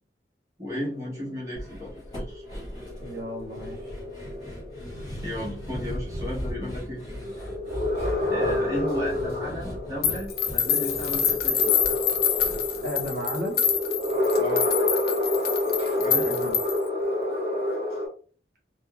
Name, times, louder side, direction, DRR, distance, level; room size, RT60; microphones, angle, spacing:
voice 1, 0.6-2.4 5.2-7.0 8.3-11.7 14.4-14.7 16.0-16.3, equal, 20° right, -6 dB, 0.9 m, -34 dB
sound 1, 0.7-18.1, left 1 dB, 35° right, 1.4 m, -29 dB
sound 2, 1.6-13.8 14.1-14.2 14.6-14.7, equal, 25° left, 1.2 m, -38 dB
voice 2, 3.0-3.9 12.8-13.6 16.1-16.6, equal, 55° right, -1 dB, 0.9 m, -34 dB
sound 3, 10.0-16.9, left 8 dB, 55° left, 0.5 m, -26 dB
3.8 x 2.0 x 2.2 m, 0.40 s
head